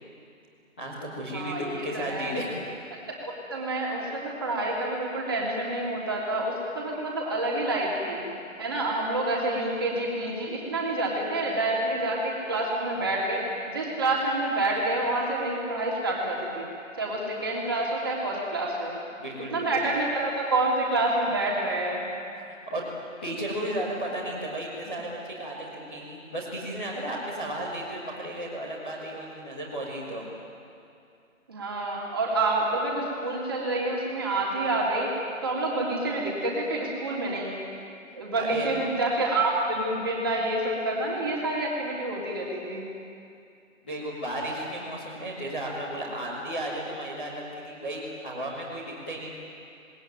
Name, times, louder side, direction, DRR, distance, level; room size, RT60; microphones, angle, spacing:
voice 1, 0.8-2.5 19.2-19.8 22.4-22.9 23.2-30.3 38.4-38.7 43.8-49.3, right 1 dB, 5° left, -12 dB, 1.7 m, -34 dB
voice 2, 1.3-2.3 3.1-8.2 8.6-13.4 13.7-16.6 17.0-19.0 19.5-22.1 31.5-35.1 35.4-37.6 38.1-42.9, right 2 dB, 15° right, -3 dB, 3.1 m, -28 dB
28.5 x 20.0 x 9.3 m, 2.5 s
hypercardioid pair, 180°, 41 cm